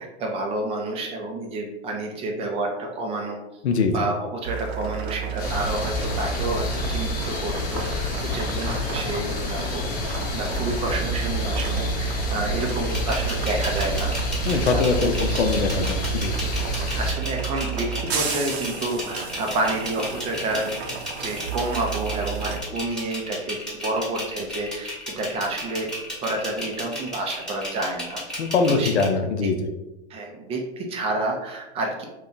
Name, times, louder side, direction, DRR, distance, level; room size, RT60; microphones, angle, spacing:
voice 1, 0.0-3.4 3.9-9.9 10.3-14.1 14.7-15.6 16.7-20.8 21.2-25.9 26.2-28.2 28.7-29.0 29.4-29.5 30.1-32.0, right 2 dB, 20° right, 1 dB, 0.4 m, -29 dB
sound 1, 4.4-22.6, right 8 dB, 65° right, 0.6 m, -31 dB
sound 2, 5.4-17.1, left 3 dB, 25° left, 0.8 m, -29 dB
sound 3, 12.9-29.0, equal, ahead, 1.0 m, -33 dB
voice 2, 14.5-16.3 28.4-29.6, left 4 dB, 75° left, 6 dB, 0.6 m, -22 dB
2.8 x 2.2 x 3.7 m, 0.99 s
hypercardioid pair, 105°, 33 cm